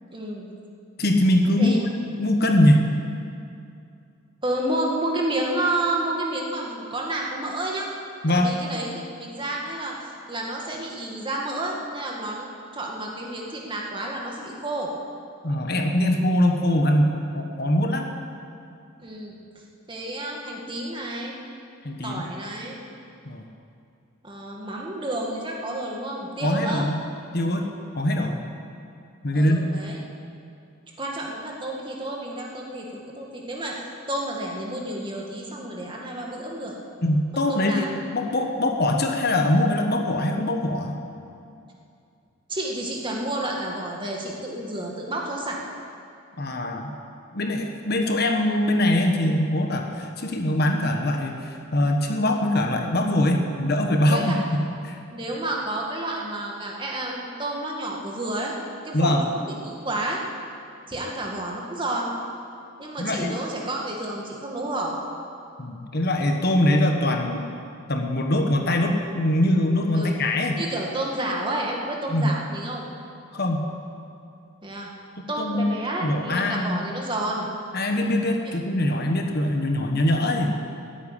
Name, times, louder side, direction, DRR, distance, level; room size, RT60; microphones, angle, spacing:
voice 1, 0.1-0.5 1.6-1.8 4.4-7.9 8.3-14.9 19.0-19.3 19.9-21.4 22.0-22.8 24.2-26.9 29.3-30.0 31.0-33.8 34.1-36.7 37.3-38.0 42.5-45.6 54.1-54.4 55.1-58.5 58.8-60.2 60.9-62.1 62.8-65.1 69.9-70.1 70.6-72.8 74.6-74.9 75.3-77.5 78.4-78.5, right 1 dB, 25° right, -2 dB, 2.0 m, -30 dB
voice 2, 1.0-1.7 2.0-2.9 8.2-8.6 15.4-18.1 21.8-22.2 23.2-23.4 26.4-27.0 27.3-27.7 27.9-28.4 29.2-29.6 37.0-41.0 46.4-46.9 47.3-55.0 58.9-59.2 63.0-63.4 65.6-67.4 67.9-70.6 72.1-72.3 73.3-73.7 75.2-75.7 76.0-76.8 77.7-80.5, left 1 dB, 50° left, 3 dB, 1.3 m, -22 dB
15.5 x 8.7 x 10.0 m, 2.5 s
head